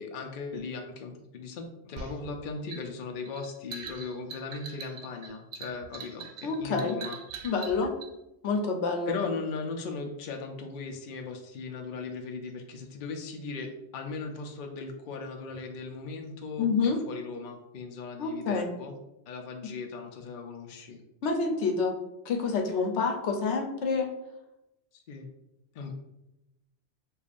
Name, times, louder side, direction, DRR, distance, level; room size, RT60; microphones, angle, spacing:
voice 1, 0.0-7.2 9.1-16.7 17.1-18.9 19.3-21.0 24.9-25.3 25.7-25.9, left 4 dB, 55° left, 3 dB, 0.7 m, -38 dB
sound 1, 2.0-8.1, right 5 dB, 65° right, 0.8 m, -43 dB
voice 2, 6.4-7.0 7.4-7.9 8.4-9.2 16.6-17.0 18.2-18.7 21.2-22.0 22.2-24.1, left 4 dB, 80° left, 3 dB, 0.9 m, -28 dB
6.8 x 2.4 x 2.5 m, 0.90 s
omnidirectional pair, 1.1 m